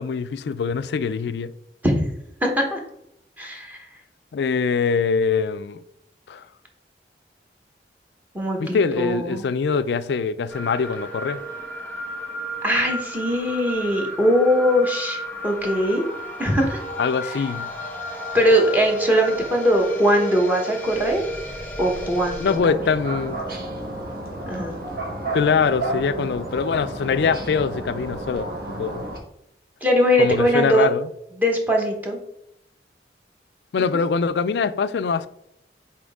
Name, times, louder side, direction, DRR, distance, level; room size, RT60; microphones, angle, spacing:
voice 1, 0.0-1.5 4.3-5.8 6.3-6.4 8.6-11.4 17.0-17.7 22.4-23.4 25.3-28.5 28.8-29.1 30.2-31.1 33.7-35.3, left 5 dB, 75° left, 0.3 m, -23 dB
voice 2, 2.4-2.8 3.4-3.9 8.3-9.4 12.6-16.0 16.4-16.8 17.2-17.4 18.3-21.2 21.8-22.8 24.5-24.8 29.8-30.9 31.4-32.2, equal, 10° right, 1.1 m, -21 dB
sound 1, 10.5-22.6, equal, 10° left, 1.0 m, -33 dB
sound 2, 22.5-29.2, right 1 dB, 55° right, 1.4 m, -32 dB
6.2 x 4.3 x 3.5 m
head